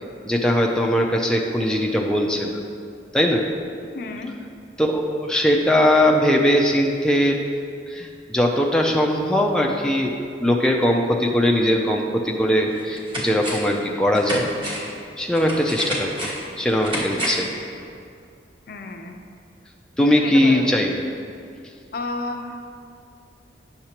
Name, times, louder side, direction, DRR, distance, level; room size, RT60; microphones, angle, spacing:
voice 1, 0.3-2.6 3.1-3.5 4.8-7.4 7.9-10.1 10.4-14.5 15.2-16.3 16.6-17.5 20.0-20.9, equal, 5° left, -1 dB, 0.4 m, -20 dB
voice 2, 3.9-4.3 18.7-19.2 20.0-20.8 21.9-22.6, left 3 dB, 55° left, 4 dB, 0.5 m, -31 dB
sound 1, 12.7-13.8 14.1-17.6 17.9-18.0, equal, 30° right, 1.3 m, -30 dB
9.7 x 6.6 x 2.9 m, 2.4 s
head